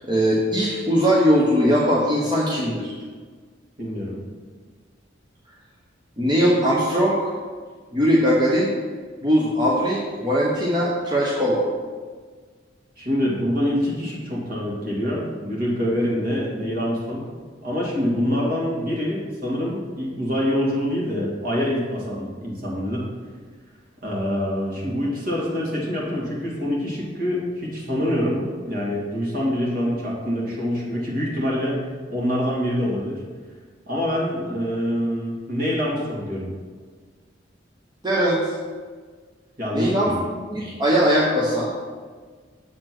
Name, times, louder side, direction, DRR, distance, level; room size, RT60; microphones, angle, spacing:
voice 1, 0.0-3.0 6.2-7.3 7.9-8.7 9.2-11.6 38.0-38.5 39.7-40.1 40.5-41.7, equal, 25° right, -6 dB, 1.0 m, -20 dB
voice 2, 3.8-4.2 13.0-17.3 17.6-23.1 24.0-31.8 32.1-33.2 33.9-36.5 39.6-40.2, equal, 50° right, -5 dB, 2.4 m, -25 dB
7.8 x 4.3 x 6.0 m, 1.5 s
head